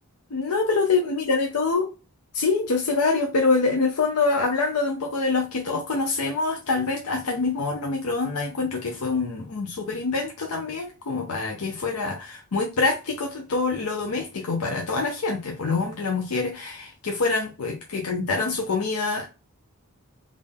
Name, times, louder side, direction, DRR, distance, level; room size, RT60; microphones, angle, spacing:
voice 1, 0.3-1.9 2.3-16.7 17.0-19.3, left 3 dB, 80° left, 0.6 m, -25 dB
3.6 x 2.4 x 3.5 m
head